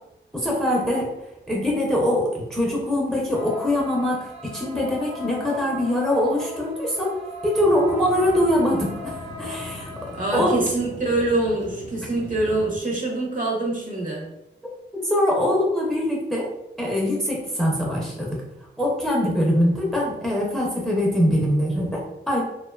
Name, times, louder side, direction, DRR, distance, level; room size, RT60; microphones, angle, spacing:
voice 1, 0.3-1.1 1.5-7.2 7.4-10.5 14.9-16.5 16.8-18.3 18.8-22.4, left 1 dB, ahead, -3 dB, 0.5 m, -23 dB
sound 1, 3.3-10.6, left 2 dB, 75° right, 0.8 m, -38 dB
sound 2, 7.5-12.8, left 2 dB, 65° left, 0.6 m, -40 dB
voice 2, 10.1-14.2, right 2 dB, 45° right, -2 dB, 0.6 m, -25 dB
2.4 x 2.2 x 2.2 m, 0.92 s
wide cardioid pair, 90°, 19 cm